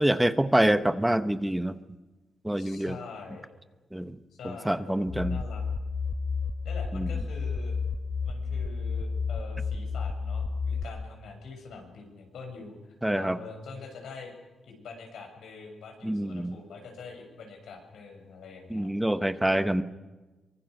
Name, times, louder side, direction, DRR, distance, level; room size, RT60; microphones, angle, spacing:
voice 1, 0.0-1.8 2.4-3.0 3.9-4.2 4.4-5.4 6.9-7.1 13.0-13.4 16.0-16.6 18.7-19.8, right 1 dB, 5° right, 11 dB, 0.9 m, -26 dB
voice 2, 2.6-3.5 4.3-5.0 5.2-5.7 6.6-7.8 8.2-14.3 14.6-18.9 19.6-19.8, left 4 dB, 90° left, 3 dB, 6.9 m, -44 dB
sound 1, 5.1-10.8, left 5 dB, 35° left, 1.4 m, -31 dB
24.5 x 23.0 x 6.6 m, 1.2 s
cardioid pair, 120°, 0 cm